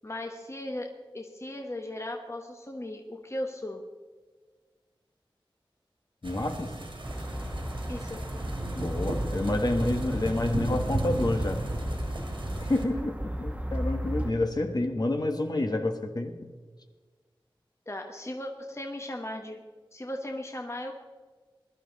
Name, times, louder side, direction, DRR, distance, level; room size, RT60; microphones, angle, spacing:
voice 1, 0.0-3.8 7.9-8.3 17.9-19.6 19.9-20.9, left 1 dB, 30° left, 3 dB, 1.4 m, -37 dB
voice 2, 6.2-6.7 8.7-11.6 12.6-16.5, left 2 dB, 45° left, 4 dB, 1.6 m, -29 dB
sound 1, 6.2-12.8, right 1 dB, 70° right, 2.5 m, -34 dB
sound 2, 7.0-14.3, equal, 15° right, 1.4 m, -35 dB
20.5 x 11.5 x 4.2 m, 1.4 s
wide cardioid pair, 50°, 9 cm